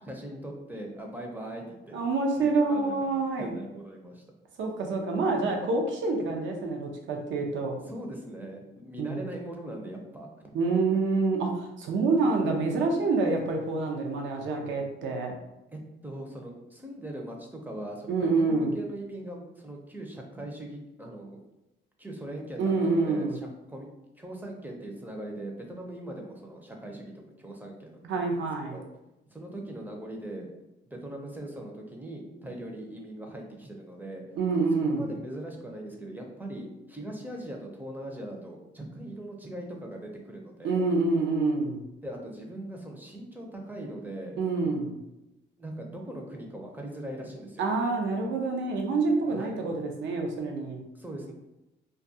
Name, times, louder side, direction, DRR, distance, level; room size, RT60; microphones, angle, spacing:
voice 1, 0.1-2.0 2.4-4.2 7.9-10.5 15.7-21.4 22.0-23.4 23.7-23.9 24.2-27.1 27.4-28.5 28.7-28.9 29.3-30.5 30.9-34.2 34.9-40.8 42.0-44.4 45.6-47.6 49.3-49.6 50.9-51.3, right 1 dB, 10° right, 1 dB, 0.5 m, -40 dB
voice 2, 1.9-3.5 4.6-7.8 9.0-9.3 10.5-15.4 18.1-18.7 22.6-23.4 28.0-28.8 34.4-35.1 40.6-41.8 44.4-45.0 47.6-50.8, right 3 dB, 70° right, 2 dB, 0.6 m, -27 dB
2.3 x 2.2 x 2.7 m, 0.93 s
cardioid pair, 90°, 20 cm